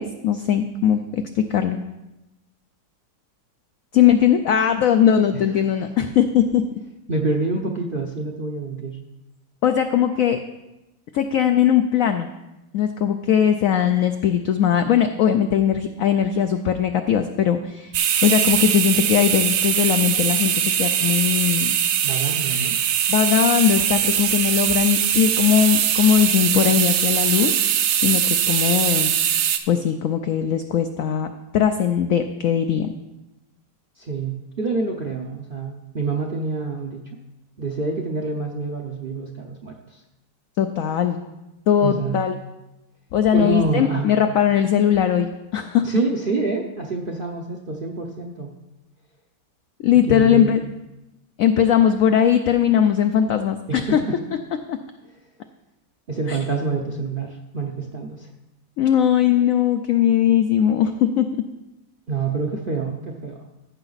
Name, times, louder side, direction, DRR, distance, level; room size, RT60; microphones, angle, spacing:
voice 1, 0.0-1.8 3.9-6.6 9.6-10.4 11.1-12.3 12.7-17.9 18.2-21.8 23.1-27.6 28.0-29.1 29.7-31.3 31.5-32.9 40.6-41.2 41.7-42.3 43.1-45.9 49.8-50.6 51.4-54.0 54.7-54.8 56.3-56.4 58.8-61.3, left 9 dB, 80° left, 7 dB, 0.7 m, -19 dB
voice 2, 5.3-5.7 6.0-6.1 7.1-9.0 22.0-22.8 34.0-37.2 37.6-40.0 41.8-42.2 43.3-44.1 45.8-48.5 50.1-50.6 53.7-54.2 56.1-58.3 62.1-63.4, right 3 dB, 55° right, 1 dB, 0.6 m, -27 dB
sound 1, 17.9-29.6, right 9 dB, 75° right, 1.2 m, -21 dB
14.0 x 5.8 x 4.0 m, 0.97 s
omnidirectional pair, 2.0 m